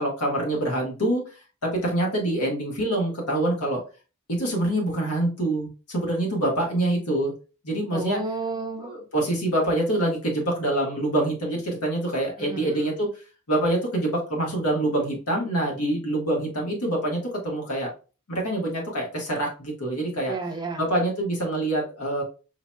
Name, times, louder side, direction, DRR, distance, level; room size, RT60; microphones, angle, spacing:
voice 1, 0.0-3.8 4.3-7.3 7.6-8.2 8.8-13.1 13.5-17.9 18.3-20.3 20.8-22.2, right 1 dB, 85° left, 1.5 m, -25 dB
voice 2, 7.9-8.9 12.4-13.0 20.3-20.9, right 3 dB, 20° right, 0.7 m, -32 dB
4.6 x 3.0 x 2.2 m
head